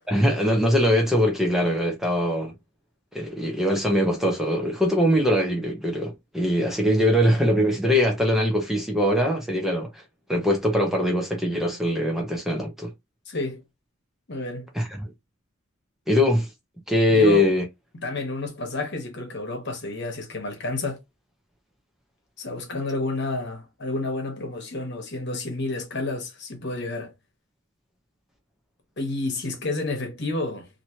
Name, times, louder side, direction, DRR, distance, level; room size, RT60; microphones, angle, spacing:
voice 1, 0.1-2.5 3.1-10.0 10.3-12.9 14.7-15.1 16.1-16.5 16.9-17.6, equal, ahead, 0.8 m, -22 dB
voice 2, 13.3-13.6 14.3-14.7 17.1-17.5 18.0-21.0 22.4-27.1 29.0-30.7, left 2 dB, 55° left, 1.2 m, -30 dB
3.0 x 2.8 x 2.8 m
head